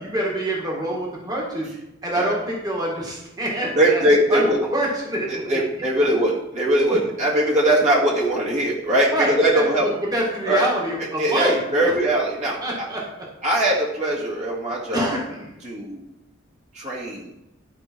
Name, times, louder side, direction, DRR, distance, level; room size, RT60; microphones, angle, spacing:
voice 1, 0.0-1.7 2.0-4.0 4.3-4.4 4.7-5.6 9.1-9.7 10.1-11.9 12.6-13.0 14.9-15.5, right 1 dB, 20° right, -3 dB, 1.8 m, -26 dB
voice 2, 3.7-4.6 5.3-9.9 10.5-10.7 11.2-12.9 13.4-15.2 15.6-16.0 16.7-17.3, right 1 dB, 35° right, -4 dB, 1.8 m, -21 dB
12.0 x 4.8 x 4.5 m, 0.90 s
head